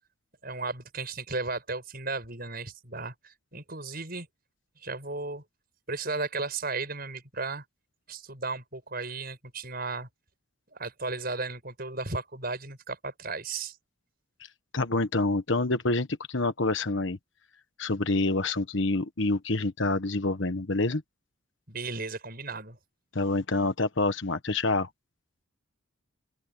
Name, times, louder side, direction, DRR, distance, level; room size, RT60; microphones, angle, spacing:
voice 1, 0.4-4.3 4.8-5.4 5.9-7.6 8.1-10.1 10.7-13.8 21.7-22.8, right 3 dB, 45° right, 8.0 m, -35 dB
voice 2, 14.7-17.2 17.8-21.0 23.1-24.9, left 2 dB, 60° left, 1.3 m, -27 dB
open air
head